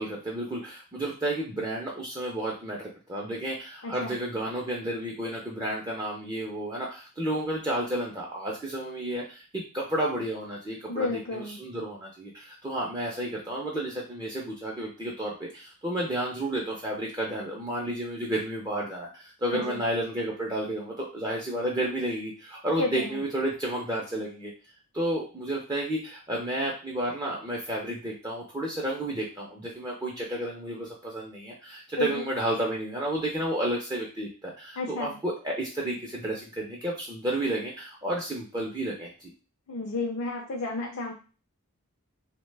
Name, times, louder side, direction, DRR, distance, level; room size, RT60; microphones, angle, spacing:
voice 1, 0.0-24.5 24.9-39.3, right 1 dB, 15° right, -3 dB, 0.4 m, -31 dB
voice 2, 3.8-4.2 10.9-11.6 19.5-19.8 22.7-23.2 32.0-32.2 34.8-35.2 39.7-41.1, left 3 dB, 65° left, 0 dB, 0.5 m, -32 dB
2.9 x 2.1 x 3.2 m, 0.34 s
head